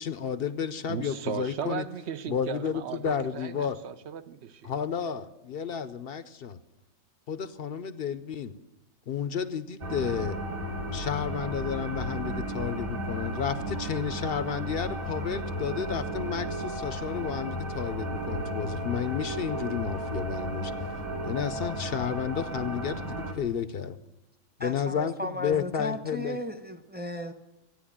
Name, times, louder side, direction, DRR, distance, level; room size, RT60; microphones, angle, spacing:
voice 1, 0.0-1.8 2.3-3.8 4.6-6.6 7.3-8.5 9.1-10.4 10.9-20.7 21.2-24.0 24.6-26.4, left 7 dB, 55° left, 0.8 m, -32 dB
voice 2, 0.9-4.7, right 7 dB, 55° right, 0.9 m, -36 dB
sound 1, 9.8-23.3, right 1 dB, 75° right, 2.6 m, -34 dB
voice 3, 24.6-27.3, left 1 dB, 10° right, 0.8 m, -35 dB
14.5 x 9.7 x 8.5 m
omnidirectional pair, 1.5 m